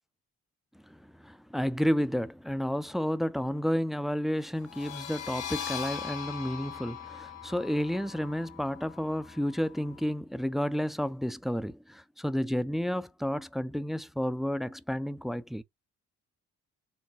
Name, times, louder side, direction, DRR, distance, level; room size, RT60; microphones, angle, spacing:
voice 1, 0.9-15.6, equal, ahead, 0.4 m, -31 dB
sound 1, 4.6-10.1, left 8 dB, 80° left, 1.7 m, -41 dB
4.1 x 2.2 x 3.5 m
cardioid pair, 90°, 30 cm